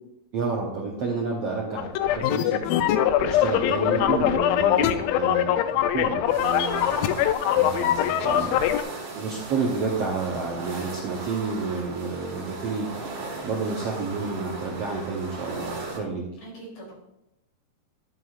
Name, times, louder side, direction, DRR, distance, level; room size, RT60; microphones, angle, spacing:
voice 1, 0.3-2.6 3.2-6.9 7.6-8.7 9.1-12.9 13.4-16.2, right 4 dB, 70° right, -2 dB, 1.5 m, -30 dB
sound 1, 1.7-8.8, left 11 dB, 85° left, 2.4 m, -22 dB
sound 2, 6.2-16.0, right 3 dB, 90° right, 3.6 m, -37 dB
voice 2, 8.3-8.9 16.4-16.9, right 1 dB, 45° left, -4 dB, 4.1 m, -44 dB
11.0 x 8.9 x 2.5 m, 0.88 s
omnidirectional pair, 4.2 m